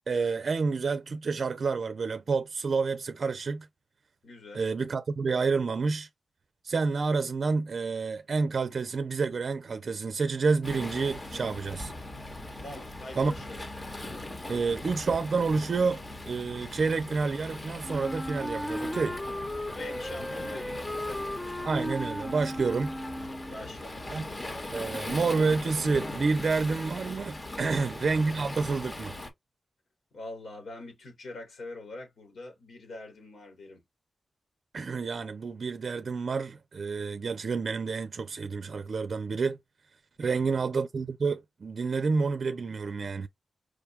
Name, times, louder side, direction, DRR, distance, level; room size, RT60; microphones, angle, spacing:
voice 1, 0.1-3.7 4.5-6.1 6.6-11.9 13.1-13.3 14.5-19.2 21.6-23.0 24.1-24.2 24.7-29.2 34.7-39.6 40.2-43.3, right 4 dB, 60° right, 0.5 m, -29 dB
voice 2, 4.2-4.6 12.6-13.6 19.7-21.5 23.5-24.0 27.5-28.0 30.1-33.8 40.2-40.6, left 2 dB, 75° left, 3.0 m, -44 dB
Waves surf, 10.6-29.3, left 2 dB, 30° left, 1.2 m, -40 dB
Wind instrument woodwind instrument, 17.8-23.6, left 1 dB, 10° left, 0.5 m, -36 dB
5.0 x 2.3 x 3.3 m
wide cardioid pair, 85°, 0 cm